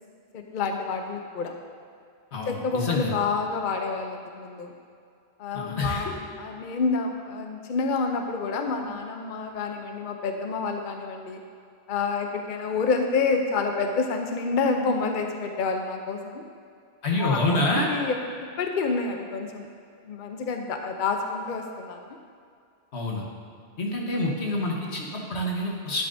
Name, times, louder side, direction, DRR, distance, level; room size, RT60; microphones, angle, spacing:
voice 1, 0.3-1.5 2.5-4.7 5.4-11.4 11.9-16.4 17.2-17.4 17.7-19.7 20.1-22.2, left 4 dB, 55° left, 4 dB, 0.8 m, -28 dB
voice 2, 2.3-3.1 5.5-6.1 17.0-17.9 22.9-23.2 23.8-26.1, left 2 dB, 90° left, -1 dB, 1.6 m, -27 dB
11.0 x 10.0 x 2.7 m, 2.3 s
omnidirectional pair, 1.1 m